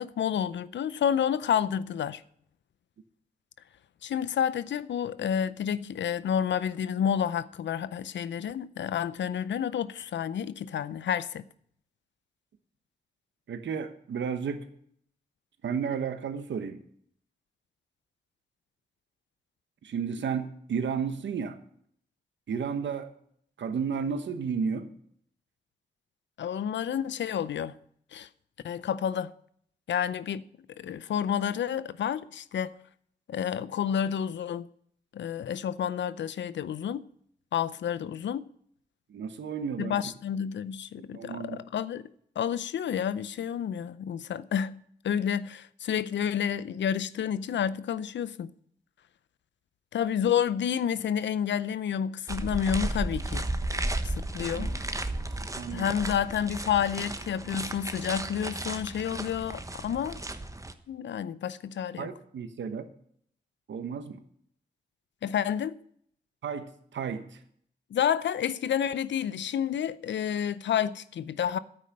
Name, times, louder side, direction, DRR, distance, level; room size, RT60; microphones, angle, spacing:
voice 1, 0.0-2.2 4.0-11.4 26.4-27.8 28.1-28.3 28.6-29.3 29.9-30.4 30.8-32.7 33.3-34.7 35.1-37.0 37.5-38.5 39.8-42.0 42.4-44.8 45.0-48.5 49.9-53.5 54.0-54.7 55.7-60.2 60.9-62.1 65.2-65.8 67.9-71.6, left 8 dB, 80° left, 0.5 m, -30 dB
voice 2, 13.5-14.6 15.6-16.8 19.8-21.6 22.5-23.1 23.6-24.9 39.1-39.9 41.0-41.6 54.4-54.7 55.6-56.0 62.0-62.8 63.7-64.2 66.4-67.4, right 6 dB, 80° right, 1.1 m, -33 dB
sound 1, 52.3-60.7, right 1 dB, 15° right, 1.1 m, -34 dB
9.7 x 8.8 x 6.6 m
cardioid pair, 45°, 19 cm